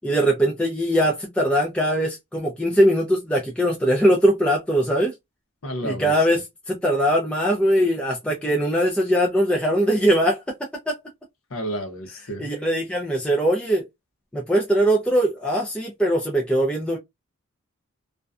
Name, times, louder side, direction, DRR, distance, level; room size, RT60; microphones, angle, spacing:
voice 1, 0.0-5.1 5.8-10.4 10.9-11.0 12.4-13.8 14.3-17.0, equal, 5° left, 0.3 m, -21 dB
voice 2, 5.6-6.1 11.5-12.5, right 1 dB, 65° left, 0.7 m, -31 dB
2.5 x 2.2 x 2.3 m
head